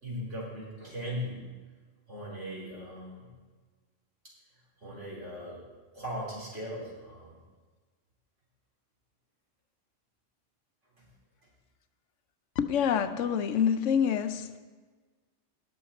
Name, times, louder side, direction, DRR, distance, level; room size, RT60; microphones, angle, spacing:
voice 1, 0.0-1.5 2.1-3.3 4.8-5.6 5.9-7.4 11.0-11.1, equal, 70° right, -5 dB, 4.0 m, -38 dB
voice 2, 12.6-14.6, left 8 dB, 90° left, 10 dB, 1.1 m, -27 dB
18.5 x 6.5 x 4.2 m, 1.4 s
omnidirectional pair, 1.3 m